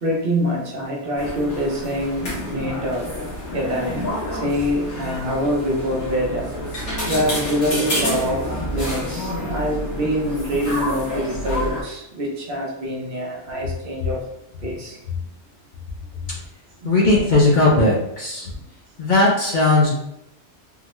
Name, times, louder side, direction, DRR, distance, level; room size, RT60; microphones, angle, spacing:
voice 1, 0.0-3.1 3.5-6.5 7.1-14.2 14.6-15.0 16.8-16.9, equal, 55° right, -2 dB, 0.9 m, -25 dB
sound 1, 1.2-11.8, left 1 dB, 80° left, 1.6 m, -28 dB
voice 2, 16.8-18.5 19.0-19.9, left 2 dB, 50° left, -3 dB, 0.6 m, -17 dB
3.8 x 2.1 x 2.9 m, 0.82 s
omnidirectional pair, 1.2 m